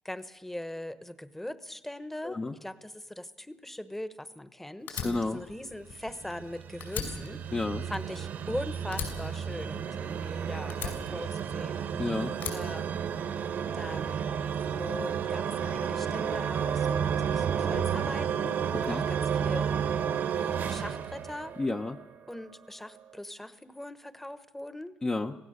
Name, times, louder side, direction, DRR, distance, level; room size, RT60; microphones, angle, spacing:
voice 1, 0.0-11.8 12.5-13.0 13.7-14.4 14.8-19.7 20.3-21.6 22.3-24.9, left 1 dB, 5° left, 12 dB, 1.1 m, -40 dB
voice 2, 2.2-2.6 5.0-5.4 7.5-7.9 12.0-12.3 18.8-19.0 21.6-22.0 25.0-25.4, left 3 dB, 25° left, 3 dB, 0.8 m, -31 dB
Fire, 4.9-6.5 6.8-8.5 8.9-10.2 10.7-11.8 12.3-13.5, left 6 dB, 70° left, 5.4 m, -39 dB
sound 1, 5.9-22.0, right 7 dB, 60° right, 1.5 m, -32 dB
26.5 x 16.5 x 6.6 m, 1.0 s
cardioid pair, 90°, 4 cm